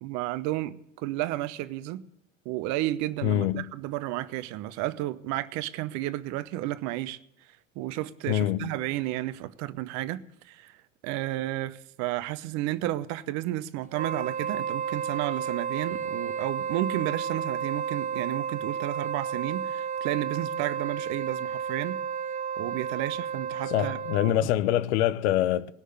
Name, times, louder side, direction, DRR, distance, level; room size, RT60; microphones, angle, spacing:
voice 1, 0.0-2.0 2.4-7.2 7.7-10.8 11.0-22.0 22.6-24.0 24.2-24.3, right 15 dB, 45° right, 0.9 m, -32 dB
voice 2, 3.2-3.7 8.3-8.7 23.7-25.7, left 12 dB, 55° left, 0.9 m, -25 dB
Wind instrument woodwind instrument, 13.9-24.5, right 7 dB, 20° right, 0.7 m, -32 dB
19.0 x 6.4 x 9.3 m
figure-of-eight pair, 80°, 39 cm